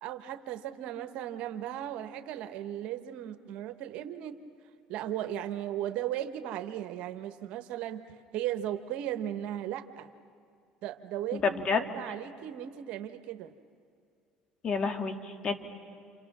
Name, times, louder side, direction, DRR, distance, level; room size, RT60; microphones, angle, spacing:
voice 1, 0.0-4.4 4.9-8.0 8.3-10.1 10.8-13.5, right 11 dB, 70° right, 9 dB, 1.2 m, -36 dB
voice 2, 11.3-11.8 14.6-15.5, left 5 dB, 45° left, 5 dB, 2.3 m, -29 dB
29.0 x 27.5 x 6.2 m, 2.3 s
supercardioid pair, 90°, 2 cm